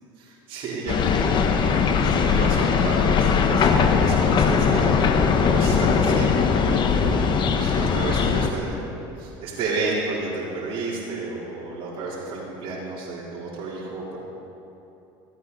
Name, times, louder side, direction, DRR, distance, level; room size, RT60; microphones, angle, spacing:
voice 1, 0.2-8.7 9.2-14.2, right 3 dB, 50° right, -8 dB, 3.8 m, -32 dB
sound 1, 0.9-8.5, left 6 dB, 40° left, 1.1 m, -20 dB
17.5 x 14.5 x 4.1 m, 2.9 s
supercardioid pair, 105°, 12 cm